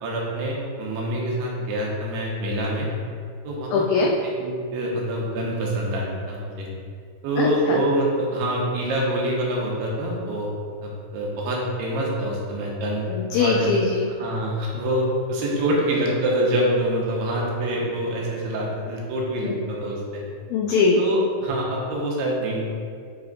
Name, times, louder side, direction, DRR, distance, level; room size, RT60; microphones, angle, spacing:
voice 1, 0.0-2.9 3.4-6.7 7.2-10.5 10.8-13.1 13.4-13.7 14.2-20.2 21.0-22.6, right 1 dB, 80° right, -3 dB, 2.9 m, -25 dB
voice 2, 3.7-4.2 7.4-7.8 13.1-14.1 19.4-19.5 20.5-21.0, left 4 dB, 85° left, -1 dB, 2.0 m, -21 dB
8.7 x 3.4 x 3.8 m, 2.2 s
omnidirectional pair, 4.8 m